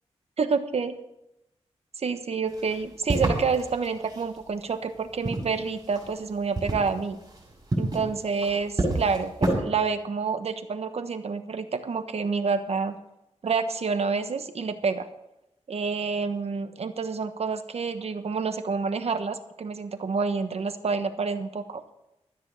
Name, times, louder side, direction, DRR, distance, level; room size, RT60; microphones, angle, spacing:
voice 1, 0.4-1.0 2.0-7.2 7.8-13.0 13.4-15.1 15.7-21.8, right 5 dB, 65° right, 9 dB, 1.2 m, -28 dB
sound 1, 2.5-4.4 5.0-6.3 6.5-9.5, right 2 dB, 35° right, 7.0 m, -29 dB
13.5 x 9.7 x 6.4 m, 0.88 s
wide cardioid pair, 95°, 11 cm